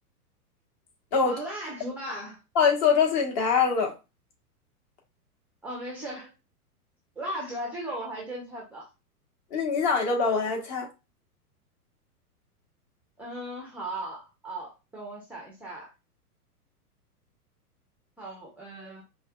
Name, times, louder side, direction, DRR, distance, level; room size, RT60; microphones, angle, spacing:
voice 1, 1.2-2.4 5.6-6.3 7.2-8.9 13.2-15.9 18.2-19.0, right 1 dB, 5° right, 0.6 m, -37 dB
voice 2, 2.5-3.9 9.5-10.9, left 5 dB, 35° left, 1.3 m, -23 dB
5.3 x 2.3 x 2.3 m
hypercardioid pair, 115°, 46 cm